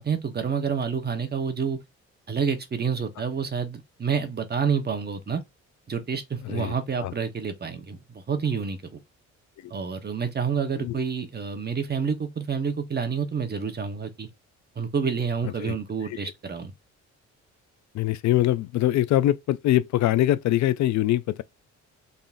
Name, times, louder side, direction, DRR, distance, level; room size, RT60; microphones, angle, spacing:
voice 1, 0.0-1.8 2.3-5.4 5.9-9.0 9.7-14.3 14.8-16.7, right 6 dB, 35° right, 1.0 m, -28 dB
voice 2, 6.4-6.7 7.0-7.1 10.7-11.0 15.4-15.8 16.0-16.2 17.9-21.4, left 14 dB, 65° left, 0.4 m, -23 dB
4.0 x 3.6 x 2.5 m
cardioid pair, 90°, 30 cm